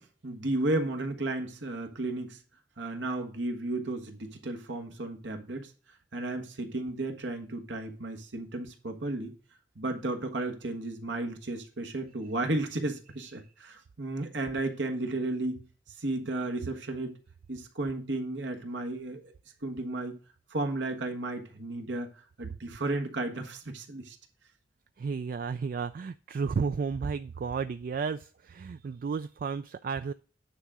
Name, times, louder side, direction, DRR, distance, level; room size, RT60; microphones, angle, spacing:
voice 1, 0.0-2.4 2.8-5.7 6.1-9.3 9.7-15.6 16.0-17.1 17.5-19.3 19.6-20.2 20.5-22.1 22.4-24.2, right 2 dB, 80° right, 4 dB, 1.4 m, -33 dB
voice 2, 25.0-30.1, right 5 dB, 50° right, 12 dB, 0.3 m, -33 dB
9.5 x 3.7 x 6.0 m, 0.39 s
head